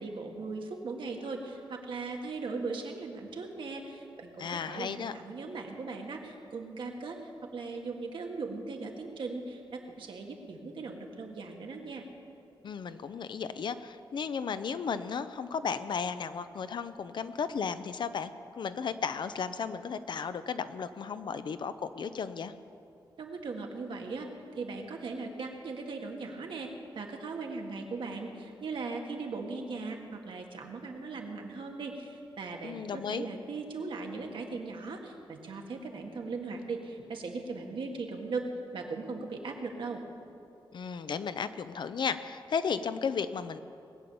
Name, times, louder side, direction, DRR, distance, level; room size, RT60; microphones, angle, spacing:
voice 1, 0.0-12.0 23.2-38.5 38.7-40.0, right 4 dB, 70° right, 2 dB, 1.7 m, -39 dB
voice 2, 4.4-5.1 12.6-18.3 18.6-22.5 32.6-33.3 40.7-43.6, left 6 dB, 60° left, 12 dB, 0.6 m, -34 dB
20.0 x 6.9 x 8.6 m, 2.6 s
wide cardioid pair, 160°, 9 cm